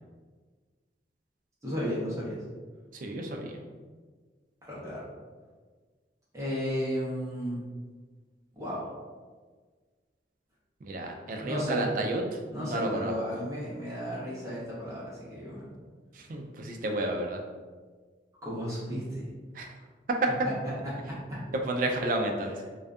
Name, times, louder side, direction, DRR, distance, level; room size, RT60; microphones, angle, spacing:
voice 1, 1.6-2.4 4.6-5.1 6.3-7.6 8.5-8.9 11.4-11.9 12.5-15.7 18.4-19.3 20.4-20.5 20.8-21.4, equal, 20° right, -8 dB, 0.8 m, -34 dB
voice 2, 3.0-3.6 10.8-12.2 12.6-13.1 16.2-17.4 19.5-19.7 21.6-22.5, right 1 dB, 50° right, 2 dB, 0.3 m, -31 dB
2.6 x 2.3 x 2.3 m, 1.5 s
head